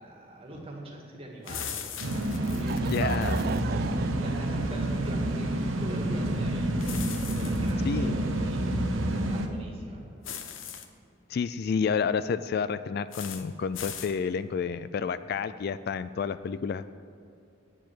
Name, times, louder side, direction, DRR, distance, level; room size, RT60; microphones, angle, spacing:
voice 1, 0.0-2.9 4.0-6.8 7.3-10.1, right 1 dB, 30° right, -1 dB, 1.9 m, -42 dB
sound 1, 1.4-3.6 6.8-7.7 10.2-10.9 13.1-13.4 13.7-14.1, left 8 dB, 80° left, 0.8 m, -39 dB
sound 2, 2.0-9.5, right 1 dB, 90° right, 1.0 m, -28 dB
Laughter / Crowd, 2.2-6.9, right 6 dB, 50° right, 0.4 m, -38 dB
voice 2, 2.9-3.4 7.8-8.2 11.3-16.9, left 6 dB, 50° left, 14 dB, 0.3 m, -30 dB
9.1 x 7.5 x 7.8 m, 2.5 s
head